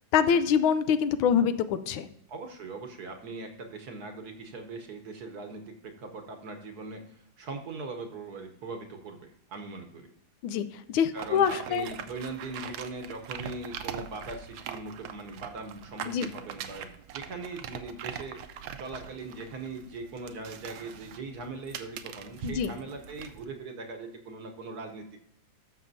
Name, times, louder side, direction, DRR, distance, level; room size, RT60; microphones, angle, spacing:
voice 1, 0.1-2.1 10.4-11.9 16.1-16.3 22.4-22.7, left 7 dB, 80° left, 12 dB, 1.4 m, -25 dB
voice 2, 2.3-10.1 11.1-18.4 18.8-25.1, right 3 dB, 55° right, 6 dB, 1.3 m, -40 dB
sound 1, 11.2-23.4, right 8 dB, 75° right, 1.3 m, -42 dB
14.0 x 6.4 x 2.6 m, 0.77 s
omnidirectional pair, 2.2 m